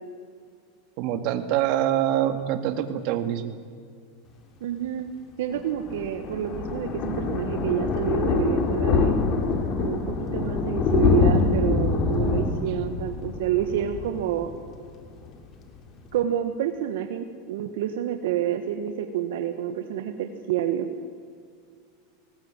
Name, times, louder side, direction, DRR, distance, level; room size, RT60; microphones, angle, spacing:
voice 1, 1.0-3.6, right 11 dB, 55° right, 8 dB, 2.0 m, -25 dB
voice 2, 4.6-5.1 5.4-9.2 9.8-14.5 16.1-20.9, right 10 dB, 75° right, 7 dB, 1.5 m, -28 dB
Thunder, 5.5-14.9 15.2-15.5 15.8-15.9 16.1-16.2, left 4 dB, 40° left, 2.8 m, -25 dB
19.0 x 19.0 x 9.0 m, 2.1 s
supercardioid pair, 130°, 0 cm